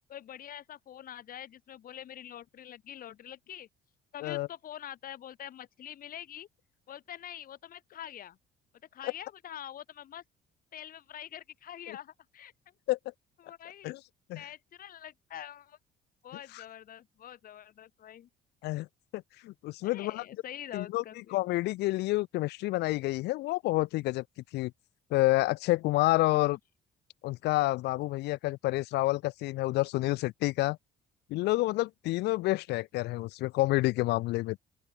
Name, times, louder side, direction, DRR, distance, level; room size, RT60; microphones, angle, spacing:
voice 1, 0.1-3.7 4.1-6.5 6.9-8.4 8.9-10.2 10.7-12.5 13.4-13.9 14.3-15.8 16.2-18.3 19.8-21.4, left 10 dB, 55° left, 6.4 m, -45 dB
voice 2, 19.1-20.2 20.7-21.0 21.3-24.2 24.5-24.7 25.1-26.6 27.2-30.8 31.3-34.6, left 19 dB, 80° left, 0.9 m, -29 dB
open air
cardioid pair, 110°, 17 cm